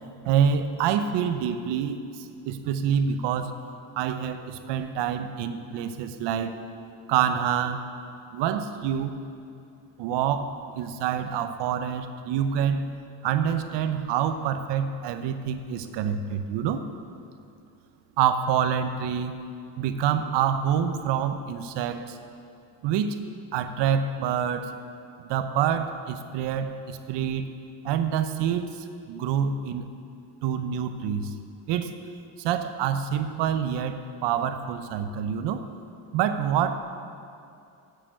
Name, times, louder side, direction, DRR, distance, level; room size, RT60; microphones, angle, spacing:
voice 1, 0.3-2.0 2.5-3.5 4.0-6.6 7.1-7.8 8.3-9.2 10.0-12.9 13.2-16.8 18.2-19.4 19.8-22.1 22.8-23.2 23.5-24.7 25.2-27.5 27.8-28.8 29.1-29.8 30.4-31.3 31.7-31.9 32.4-35.6 36.1-36.8, right 8 dB, 80° right, 9 dB, 0.8 m, -26 dB
9.0 x 6.9 x 8.1 m, 2.5 s
cardioid pair, 90°, 42 cm